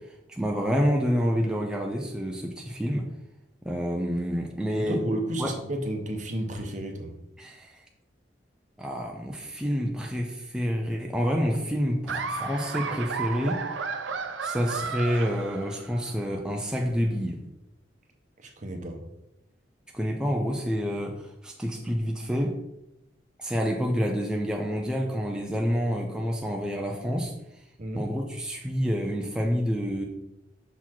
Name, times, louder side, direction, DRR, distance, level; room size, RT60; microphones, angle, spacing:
voice 1, 0.0-3.1 3.6-5.0 5.4-5.5 7.4-7.8 8.8-13.9 14.4-17.4 19.9-22.5 23.4-27.3 28.0-30.1, equal, 5° right, 0 dB, 0.5 m, -28 dB
voice 2, 4.8-7.2 18.4-19.0 27.8-28.1, right 1 dB, 45° right, 4 dB, 0.9 m, -32 dB
Laughter, 12.1-16.1, right 5 dB, 85° right, 0.5 m, -33 dB
5.9 x 4.1 x 4.5 m, 0.90 s
head